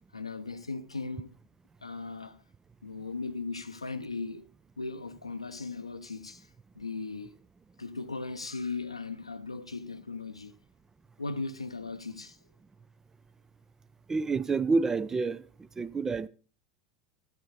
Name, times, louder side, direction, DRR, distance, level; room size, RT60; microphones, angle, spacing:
voice 1, 0.1-1.3 1.8-2.4 2.8-4.5 4.8-6.5 6.8-7.3 7.8-10.5 11.2-12.4, left 3 dB, 85° left, 0.7 m, -37 dB
voice 2, 14.1-15.4 15.8-16.3, right 4 dB, 15° right, 0.5 m, -28 dB
13.0 x 8.4 x 4.1 m
figure-of-eight pair, 80°, 3 cm